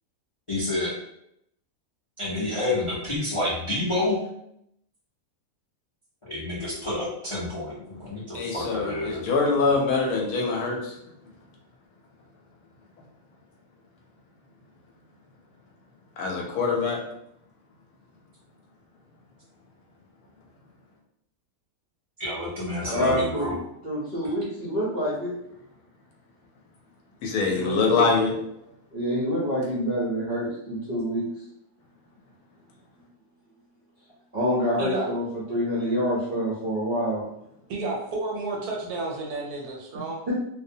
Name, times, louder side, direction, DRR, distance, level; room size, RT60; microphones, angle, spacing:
voice 1, 0.5-0.9 2.2-4.2 6.2-9.2 22.2-23.5, left 2 dB, 40° left, -9 dB, 0.4 m, -29 dB
voice 2, 8.3-11.0 16.2-17.0 22.8-23.1 27.2-28.3, left 4 dB, 70° left, -1 dB, 1.0 m, -24 dB
voice 3, 22.9-23.5 23.8-25.3 27.5-28.1 28.9-31.2 34.3-35.2 35.5-37.2 40.3-40.4, equal, 50° right, -8 dB, 0.6 m, -27 dB
voice 4, 34.8-35.1 37.7-40.2, right 2 dB, 75° right, -1 dB, 1.1 m, -31 dB
2.7 x 2.0 x 2.6 m, 0.76 s
omnidirectional pair, 1.7 m